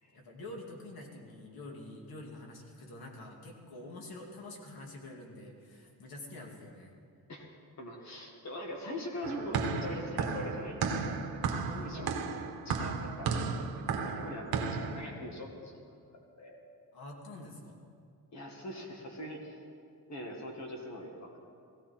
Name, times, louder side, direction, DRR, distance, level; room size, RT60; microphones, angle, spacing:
voice 1, 0.1-6.9 11.7-12.4 16.9-17.7, left 2 dB, 85° left, 0 dB, 2.4 m, -46 dB
voice 2, 7.3-11.0 11.4-12.1 12.6-13.4 13.7-16.6 18.3-19.6 20.1-21.4, left 1 dB, 50° left, 1 dB, 1.9 m, -42 dB
sound 1, 9.2-15.1, right 5 dB, 90° right, 1.1 m, -34 dB
17.5 x 16.0 x 4.4 m, 2.4 s
wide cardioid pair, 175°, 36 cm